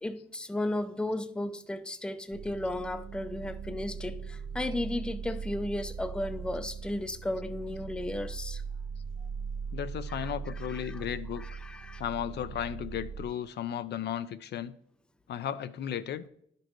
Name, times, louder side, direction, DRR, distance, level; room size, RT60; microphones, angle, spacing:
voice 1, 0.0-8.6 10.1-11.1 11.3-12.0, left 1 dB, 5° left, 0.5 m, -35 dB
sound 1, 2.3-13.3, right 6 dB, 65° right, 0.7 m, -40 dB
voice 2, 9.7-11.4 12.0-14.7 15.3-16.2, left 10 dB, 60° left, 0.4 m, -35 dB
11.0 x 5.2 x 3.0 m
cardioid pair, 90°, 20 cm